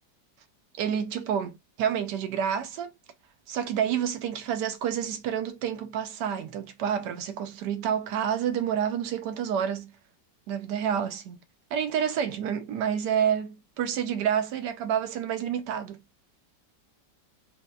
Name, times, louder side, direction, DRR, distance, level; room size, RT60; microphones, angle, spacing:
voice 1, 0.8-2.9 3.5-9.9 10.5-11.4 11.7-16.0, right 8 dB, 75° right, 1.1 m, -29 dB
4.1 x 2.2 x 2.3 m
omnidirectional pair, 1.9 m